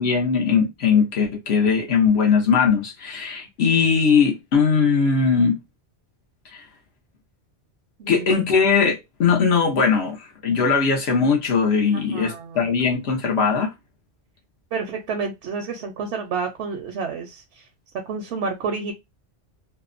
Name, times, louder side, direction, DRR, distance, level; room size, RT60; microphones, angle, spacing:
voice 1, 0.0-5.6 6.5-6.6 8.1-13.7, left 5 dB, 70° left, 0.9 m, -20 dB
voice 2, 11.9-12.7 14.7-17.7 18.1-18.9, right 5 dB, 75° right, 0.9 m, -30 dB
2.7 x 2.1 x 2.4 m
omnidirectional pair, 1.2 m